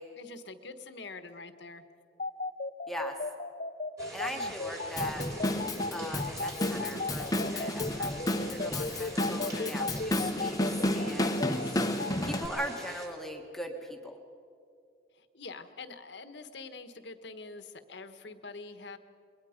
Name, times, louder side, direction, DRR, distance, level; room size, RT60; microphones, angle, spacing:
voice 1, 0.2-1.8 4.3-4.5 7.4-7.7 9.5-9.8 11.4-11.8 15.1-19.0, left 3 dB, 60° left, 9 dB, 1.3 m, -45 dB
sound 1, 2.2-12.1, left 3 dB, 45° left, 0.9 m, -35 dB
sound 2, 4.0-13.1, right 1 dB, 15° right, 3.3 m, -45 dB
voice 2, 4.1-5.3 5.9-11.4 12.2-14.2, equal, ahead, 2 dB, 1.6 m, -40 dB
Drum kit / Drum, 5.0-12.5, left 1 dB, 20° left, 1.0 m, -32 dB
27.0 x 22.0 x 5.1 m, 2.4 s
head